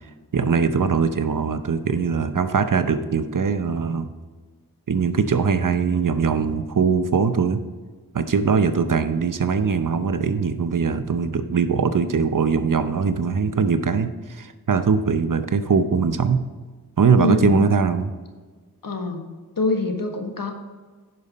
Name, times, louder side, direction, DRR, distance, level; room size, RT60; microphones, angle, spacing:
voice 1, 0.3-4.1 4.9-7.6 8.1-16.4 17.0-18.1, right 5 dB, 60° right, 10 dB, 0.8 m, -21 dB
voice 2, 17.2-17.6 18.8-19.2 19.6-20.5, left 2 dB, 65° left, 4 dB, 1.5 m, -24 dB
11.0 x 5.5 x 4.2 m, 1.4 s
cardioid pair, 40°, 37 cm